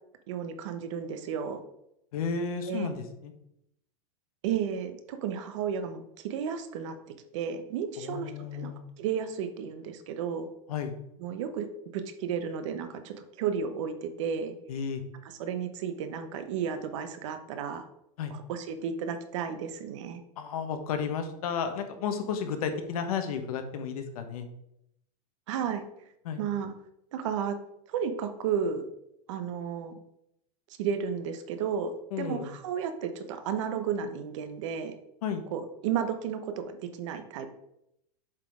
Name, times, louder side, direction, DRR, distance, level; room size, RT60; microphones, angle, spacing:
voice 1, 0.3-1.6 2.7-2.9 4.4-7.0 7.3-8.7 9.0-10.5 11.2-14.5 15.2-17.9 18.3-20.2 25.5-25.8 26.4-26.7 27.1-27.6 27.9-28.8 29.3-29.9 30.8-34.9 35.5-37.5, right 7 dB, 50° right, 9 dB, 0.9 m, -33 dB
voice 2, 2.1-3.3 8.0-8.8 10.7-10.9 14.7-15.0 18.2-18.3 20.4-24.4 26.2-26.4 32.1-32.5 35.2-35.4, left 6 dB, 70° left, 7 dB, 1.2 m, -32 dB
7.4 x 4.1 x 4.9 m, 0.79 s
supercardioid pair, 175°, 19 cm